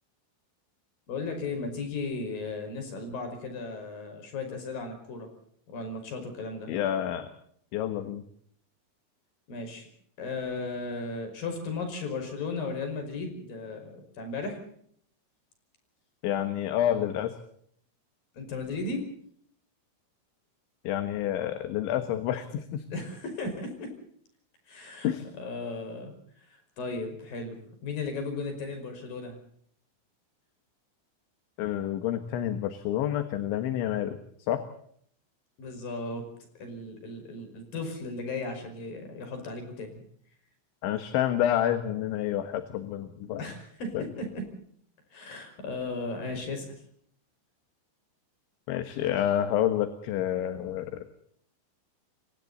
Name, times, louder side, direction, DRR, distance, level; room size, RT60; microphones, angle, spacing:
voice 1, 1.1-5.3 5.7-6.7 9.5-9.9 10.2-14.6 18.3-19.0 22.9-23.9 24.7-26.1 26.4-29.4 35.6-36.2 36.6-40.0 43.4-44.5 45.1-46.8, left 3 dB, 45° left, 6 dB, 6.9 m, -36 dB
voice 2, 6.7-7.3 7.7-8.2 16.2-17.3 20.9-22.8 25.0-25.3 31.6-34.2 34.5-34.6 40.8-43.4 44.0-44.1 48.7-51.0, left 11 dB, 70° left, 9 dB, 3.6 m, -28 dB
28.5 x 24.5 x 4.2 m, 0.64 s
omnidirectional pair, 5.8 m